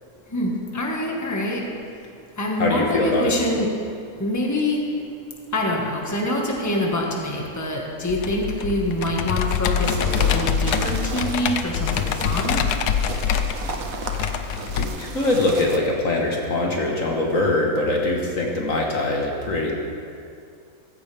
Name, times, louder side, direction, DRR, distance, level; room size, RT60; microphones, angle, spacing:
voice 1, 0.3-1.6 2.4-3.7 4.2-4.8 5.5-12.6, left 1 dB, 10° left, -1 dB, 1.5 m, -25 dB
voice 2, 2.6-3.3 14.8-19.7, left 2 dB, 55° left, -1 dB, 1.8 m, -22 dB
Computer keyboard, 8.1-14.8, left 8 dB, 80° left, 1.2 m, -24 dB
sound 1, 9.8-15.8, right 4 dB, 65° right, 1.4 m, -34 dB
15.5 x 14.5 x 3.5 m, 2.4 s
omnidirectional pair, 1.6 m